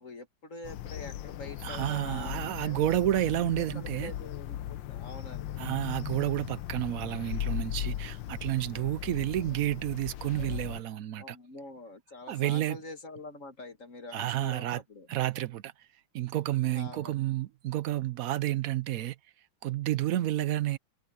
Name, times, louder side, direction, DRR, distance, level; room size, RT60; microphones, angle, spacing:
voice 1, 0.0-2.8 3.3-5.6 11.2-15.1 16.6-17.3, left 2 dB, 40° left, 1.9 m, -45 dB
sound 1, 0.6-10.8, left 12 dB, 75° left, 1.4 m, -38 dB
voice 2, 1.6-4.1 5.6-11.4 12.3-12.8 14.1-14.8 15.1-15.7 16.1-19.2 19.6-20.8, right 14 dB, 85° right, 0.7 m, -30 dB
omnidirectional pair, 2.2 m